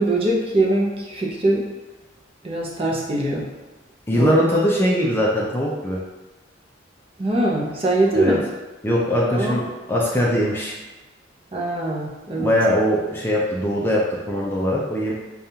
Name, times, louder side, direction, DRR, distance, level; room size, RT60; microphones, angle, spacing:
voice 1, 0.0-1.6 2.4-3.5 4.1-4.3 7.2-8.4 9.3-9.6 11.5-12.5, right 2 dB, 30° right, -3 dB, 0.6 m, -22 dB
voice 2, 4.1-6.0 8.1-8.3 8.8-10.8 12.4-15.1, equal, 10° left, -4 dB, 0.5 m, -21 dB
5.2 x 2.3 x 2.8 m, 1.1 s
head